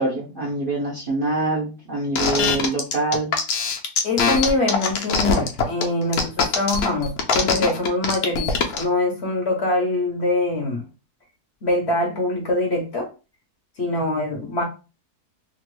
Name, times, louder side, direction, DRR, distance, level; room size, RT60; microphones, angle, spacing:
voice 1, 0.0-3.3 14.0-14.3 14.6-14.7, right 2 dB, 50° right, 0.7 m, -25 dB
sound 1, 2.2-8.8, left 5 dB, 70° left, 1.1 m, -22 dB
voice 2, 4.0-10.8 11.6-13.1 13.8-14.6, left 2 dB, 50° left, 0.9 m, -23 dB
3.0 x 2.5 x 3.0 m
omnidirectional pair, 1.7 m